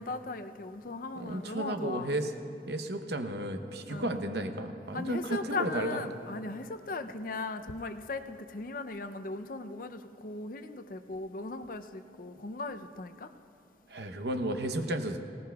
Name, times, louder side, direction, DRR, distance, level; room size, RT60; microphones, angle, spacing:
voice 1, 0.0-2.1 3.9-4.1 4.9-13.3, left 3 dB, 50° left, 9 dB, 0.5 m, -38 dB
voice 2, 1.2-2.3 2.7-6.0 13.9-15.2, right 1 dB, 70° right, 6 dB, 0.8 m, -33 dB
19.0 x 18.0 x 2.3 m, 2.6 s
head